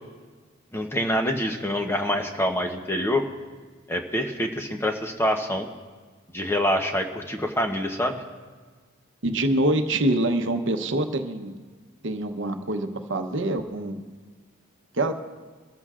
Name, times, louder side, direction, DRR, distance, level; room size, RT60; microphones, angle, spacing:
voice 1, 0.7-3.3 3.9-5.7 6.3-8.2, equal, 10° left, 4 dB, 0.8 m, -26 dB
voice 2, 9.2-11.5 12.0-14.0 15.0-15.1, right 1 dB, 60° right, 6 dB, 0.9 m, -25 dB
24.0 x 13.5 x 2.5 m, 1.4 s
head